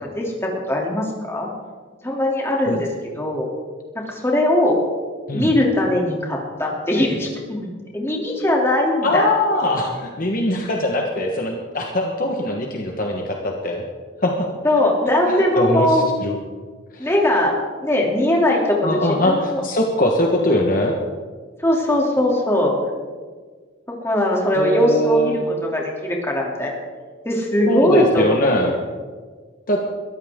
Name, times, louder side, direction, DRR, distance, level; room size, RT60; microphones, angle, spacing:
voice 1, 0.1-1.5 2.0-2.9 3.1-3.5 4.1-4.8 5.3-7.7 7.9-9.3 14.6-16.1 17.0-17.5 17.8-19.6 21.6-22.7 24.0-25.3 25.6-26.7 27.2-28.4 28.6-28.7, left 1 dB, 15° left, -2 dB, 2.9 m, -20 dB
voice 2, 9.0-13.8 14.2-14.5 15.3-16.4 16.9-17.1 18.8-20.9 24.5-25.4 27.7-28.8 29.7-29.8, left 1 dB, 45° left, 1 dB, 1.4 m, -21 dB
22.0 x 14.0 x 3.7 m, 1.5 s
head